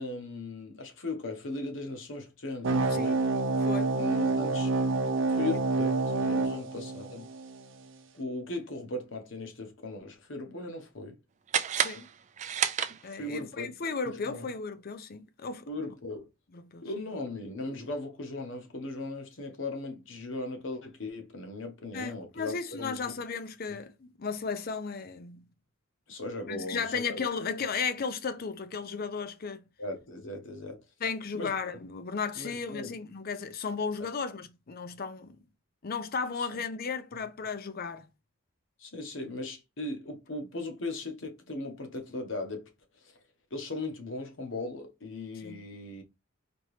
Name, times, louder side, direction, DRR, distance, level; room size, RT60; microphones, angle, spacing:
voice 1, 0.0-3.2 4.0-4.7 5.3-7.3 8.1-11.2 13.2-13.7 14.0-14.5 15.7-16.3 16.8-23.1 26.1-27.3 29.8-30.8 31.3-31.5 32.4-32.9 34.0-34.1 36.4-36.5 38.8-42.7 43.5-46.0, left 2 dB, 65° left, 1.1 m, -38 dB
sound 1, 2.6-7.6, right 3 dB, 65° right, 0.7 m, -28 dB
voice 2, 3.6-3.9 4.2-5.0 11.8-12.1 13.0-15.7 16.5-16.9 21.9-25.5 26.5-29.6 31.0-35.4 35.8-38.1 45.4-45.7, left 5 dB, 50° left, 0.5 m, -35 dB
sound 2, 11.5-13.4, right 8 dB, 35° right, 0.4 m, -31 dB
4.4 x 2.9 x 3.2 m
head